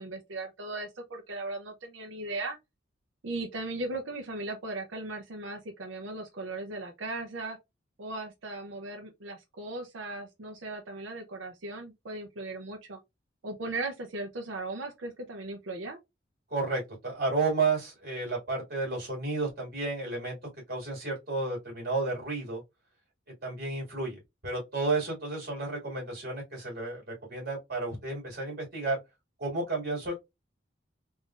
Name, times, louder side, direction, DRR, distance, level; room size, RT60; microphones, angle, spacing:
voice 1, 0.0-2.6 3.2-7.6 8.0-13.0 13.4-16.0, right 2 dB, 85° right, 0.6 m, -37 dB
voice 2, 16.5-20.4 20.7-22.6 23.4-29.0 29.4-30.1, right 3 dB, 55° right, 2.1 m, -32 dB
3.7 x 2.6 x 2.4 m
head